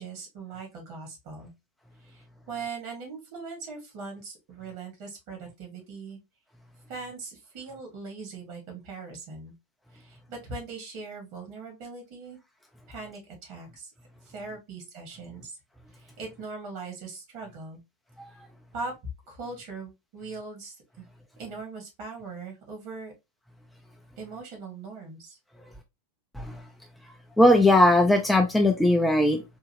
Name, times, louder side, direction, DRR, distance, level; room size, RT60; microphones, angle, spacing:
voice 1, 0.0-1.5 2.0-6.2 6.9-9.5 9.9-12.4 12.9-13.9 14.3-15.6 16.0-17.8 18.7-18.9 19.3-21.0 21.4-23.1 24.2-25.3, right 4 dB, 45° right, 1.8 m, -40 dB
voice 2, 27.4-29.4, left 1 dB, 5° left, 0.4 m, -19 dB
3.7 x 2.7 x 2.8 m
figure-of-eight pair, 90°, 0 cm